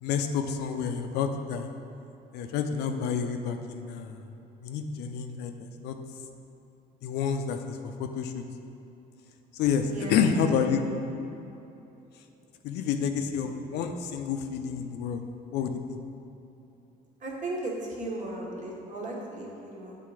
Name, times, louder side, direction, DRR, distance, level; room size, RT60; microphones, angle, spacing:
voice 1, 0.0-1.7 2.3-4.2 4.6-6.0 7.0-8.4 9.5-10.8 12.6-15.2 15.5-16.0, left 6 dB, 85° left, 6 dB, 0.5 m, -29 dB
voice 2, 9.8-10.2 17.2-20.0, right 2 dB, 45° right, -2 dB, 1.3 m, -36 dB
7.7 x 3.7 x 4.8 m, 2.9 s
cardioid pair, 110°, 17 cm